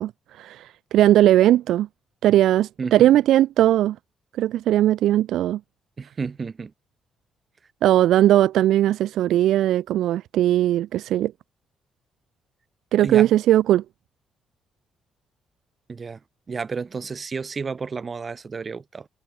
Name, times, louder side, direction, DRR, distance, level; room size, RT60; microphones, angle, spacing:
voice 1, 0.0-1.9 2.2-4.0 4.4-5.6 7.8-11.3 12.9-13.8, right 13 dB, 80° right, 0.8 m, -19 dB
voice 2, 6.0-6.7 13.0-13.3 15.9-16.2 16.5-19.1, right 5 dB, 35° right, 1.6 m, -31 dB
cardioid pair, 90°, 0 cm